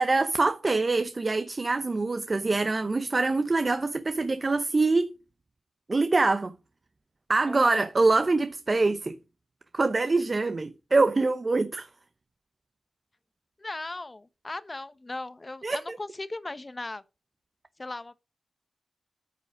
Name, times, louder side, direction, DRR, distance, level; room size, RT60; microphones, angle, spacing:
voice 1, 0.0-5.1 5.9-6.5 7.3-9.1 9.7-11.9 15.6-16.0, right 3 dB, 40° right, 0.8 m, -24 dB
voice 2, 7.5-7.9 13.6-17.0 17.8-18.1, left 2 dB, 30° left, 1.1 m, -37 dB
9.5 x 5.6 x 4.9 m
cardioid pair, 55°, 0 cm